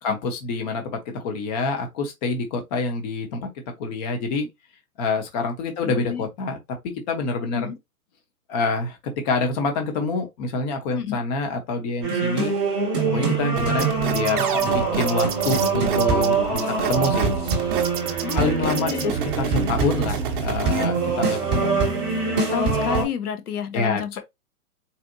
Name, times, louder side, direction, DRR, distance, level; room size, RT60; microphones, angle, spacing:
voice 1, 0.0-3.5 3.8-4.5 5.0-6.6 6.8-7.7 8.5-12.5 13.1-17.3 18.3-21.7 23.7-24.2, left 3 dB, 30° left, 0.9 m, -27 dB
voice 2, 5.8-6.2 7.5-7.7 10.9-11.2 18.1-19.1 22.5-24.2, left 8 dB, 80° left, 0.9 m, -30 dB
sound 1, 12.0-23.0, right 4 dB, 5° right, 0.3 m, -23 dB
sound 2, 13.6-20.8, right 7 dB, 35° right, 0.7 m, -29 dB
4.2 x 2.6 x 2.6 m
hypercardioid pair, 145°, 44 cm